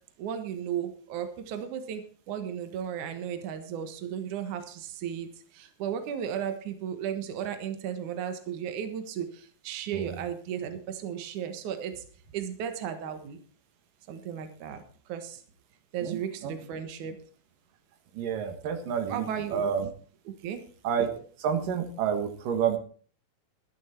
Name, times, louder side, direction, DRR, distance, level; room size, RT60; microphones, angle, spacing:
voice 1, 0.2-2.0 2.3-5.3 5.5-12.0 12.3-13.4 14.1-14.8 15.1-15.4 15.9-17.2 19.1-19.7 20.4-20.6, right 8 dB, 80° right, 7 dB, 1.7 m, -35 dB
voice 2, 16.0-16.5 18.1-19.9 20.8-21.1 21.4-22.8, right 7 dB, 60° right, 5 dB, 2.6 m, -29 dB
14.0 x 12.5 x 4.5 m, 0.42 s
omnidirectional pair, 5.8 m